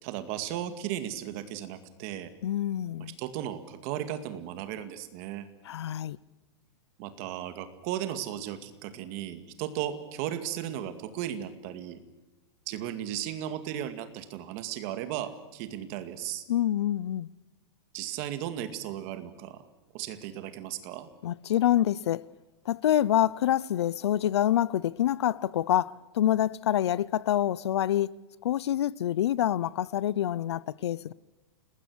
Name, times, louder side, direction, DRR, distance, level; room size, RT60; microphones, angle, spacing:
voice 1, 0.0-2.3 3.0-5.5 7.0-12.0 12.7-16.4 17.9-19.7 19.9-21.1, right 11 dB, 35° right, 2.1 m, -36 dB
voice 2, 2.4-3.2 5.6-6.2 16.5-17.3 21.2-22.3 22.7-28.1 28.4-31.1, left 12 dB, 75° left, 0.8 m, -26 dB
29.5 x 20.0 x 6.3 m
supercardioid pair, 175°, 14 cm